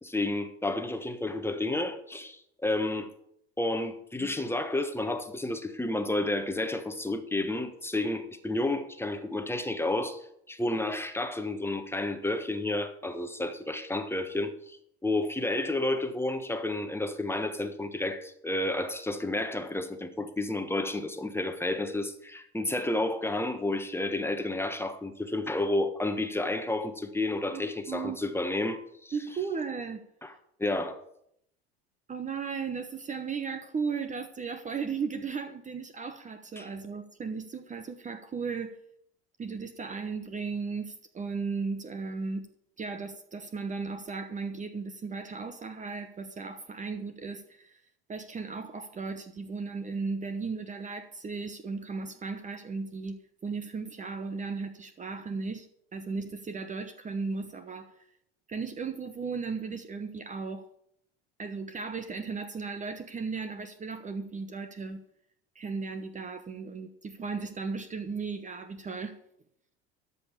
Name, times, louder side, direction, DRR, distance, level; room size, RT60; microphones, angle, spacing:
voice 1, 0.0-3.1 3.6-10.2 10.5-29.1 30.2-30.3 30.6-31.0 36.6-36.7, left 2 dB, 10° left, 1.2 m, -31 dB
voice 2, 27.4-28.2 29.1-30.0 32.1-38.8 39.4-42.5 42.8-47.8 48.1-58.0 58.5-60.7 61.4-65.0 65.5-69.2, right 4 dB, 25° right, 1.0 m, -36 dB
13.0 x 5.5 x 7.0 m
hypercardioid pair, 90°, 30 cm